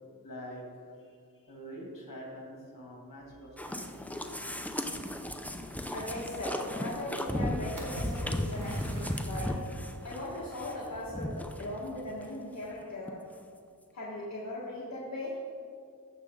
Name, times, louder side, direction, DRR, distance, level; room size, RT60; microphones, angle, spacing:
voice 1, 0.2-4.1, equal, 65° left, -2 dB, 2.5 m, -46 dB
sound 1, 3.2-9.9, right 1 dB, 60° right, 1.8 m, -48 dB
sound 2, 3.6-11.9 12.2-12.3 12.8-12.9 13.1-13.2, left 1 dB, 5° left, 0.6 m, -36 dB
voice 2, 5.9-9.7 10.0-13.2 13.9-15.4, left 1 dB, 50° left, -6 dB, 1.6 m, -38 dB
15.0 x 6.4 x 3.8 m, 2.2 s
wide cardioid pair, 70°, 35 cm